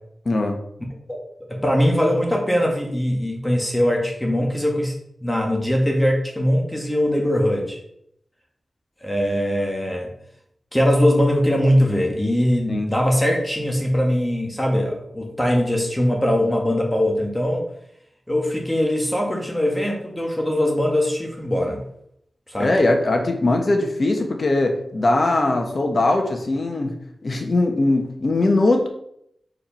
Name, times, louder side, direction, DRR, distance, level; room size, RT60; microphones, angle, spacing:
voice 1, 0.2-0.6 12.7-12.9 22.6-26.9 27.2-28.9, left 2 dB, 50° left, 3 dB, 1.3 m, -20 dB
voice 2, 1.5-4.9 5.2-7.8 9.0-10.1 10.7-17.6 18.3-21.8 22.5-22.7, equal, 10° left, 0 dB, 1.5 m, -21 dB
4.8 x 4.6 x 5.7 m, 0.73 s
wide cardioid pair, 85°, 0 cm